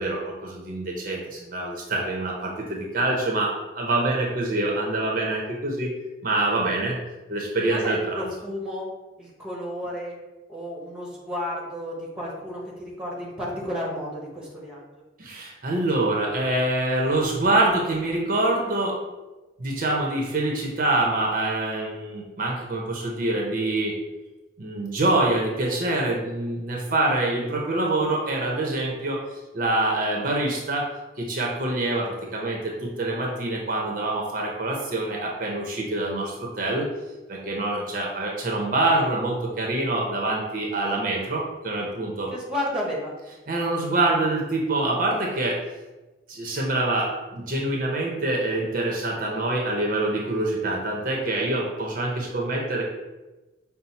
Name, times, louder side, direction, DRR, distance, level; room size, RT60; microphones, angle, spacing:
voice 1, 0.0-5.9 6.2-7.0 7.3-8.3 15.2-19.0 19.6-23.9 24.6-29.2 29.5-30.9 31.2-36.8 37.3-42.3 43.5-45.6 46.3-52.8, right 2 dB, 50° right, -1 dB, 0.7 m, -25 dB
voice 2, 7.7-8.9 9.2-10.1 10.5-14.8 42.3-43.1, left 1 dB, 5° right, -4 dB, 1.0 m, -32 dB
5.6 x 2.0 x 4.0 m, 1.1 s
head